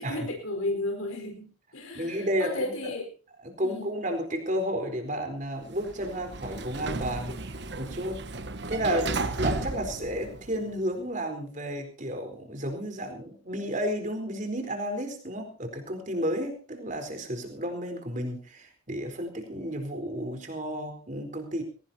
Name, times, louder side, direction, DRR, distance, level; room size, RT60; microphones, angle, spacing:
voice 1, 0.0-1.5 1.7-3.1 3.6-3.9, left 2 dB, 85° left, 4 dB, 4.8 m, -33 dB
voice 2, 1.9-2.9 3.4-7.4 7.8-8.2 8.7-21.6, equal, 35° right, 6 dB, 4.1 m, -32 dB
Sliding door, 5.6-10.8, right 2 dB, 55° right, 1.2 m, -34 dB
21.5 x 18.0 x 2.9 m, 0.37 s
head